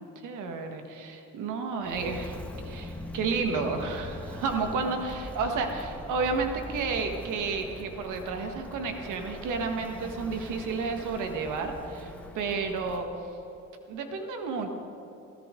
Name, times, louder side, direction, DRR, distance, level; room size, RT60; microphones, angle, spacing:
voice 1, 0.0-2.4 2.6-13.1 13.9-14.7, right 4 dB, 85° right, 5 dB, 1.6 m, -31 dB
Walk footsteps, 1.8-13.1, left 1 dB, 5° left, 1.8 m, -42 dB
20.0 x 15.0 x 3.8 m, 2.9 s
cardioid pair, 90°, 30 cm